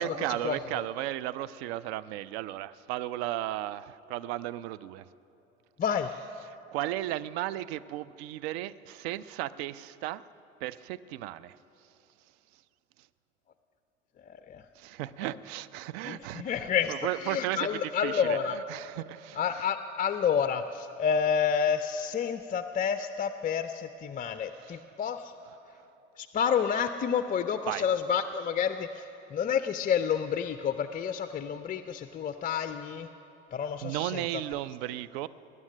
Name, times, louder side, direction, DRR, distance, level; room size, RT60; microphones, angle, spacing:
voice 1, 0.0-5.0 6.7-10.2 10.6-11.6 14.8-19.7 24.5-24.8 27.7-27.8 33.8-35.3, right 14 dB, 60° right, 17 dB, 0.5 m, -35 dB
voice 2, 5.8-6.1 14.3-14.6 16.1-16.9 17.2-18.6 19.4-25.3 26.2-29.0 29.3-33.1 33.5-34.2, left 7 dB, 25° left, 10 dB, 0.4 m, -29 dB
20.0 x 9.7 x 6.3 m, 2.8 s
figure-of-eight pair, 60°, 37 cm